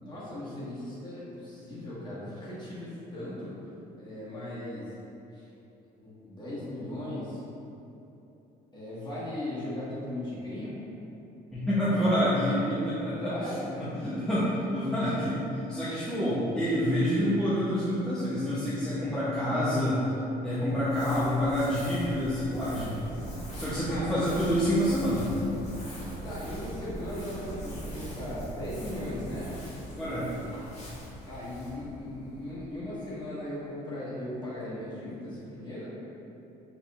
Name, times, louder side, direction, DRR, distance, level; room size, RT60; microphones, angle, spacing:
voice 1, 0.0-3.5 4.0-4.9 5.3-5.4 6.0-7.4 8.7-10.8 13.2-13.9 16.1-16.4 21.0-21.7 23.9-24.3 26.2-29.5 30.7-30.9 31.2-35.9, left 1 dB, 25° left, -9 dB, 1.5 m, -38 dB
voice 2, 11.5-13.3 13.8-15.4 15.7-20.1 20.4-23.0 23.5-25.3 30.0-30.5, equal, 5° left, -11 dB, 0.7 m, -27 dB
Crumpling crinkling, 20.7-33.2, left 1 dB, 40° left, 1.3 m, -45 dB
sound 1, 22.3-29.7, right 2 dB, 65° right, 0.7 m, -41 dB
4.8 x 3.4 x 2.4 m, 2.9 s
cardioid pair, 110°, 17 cm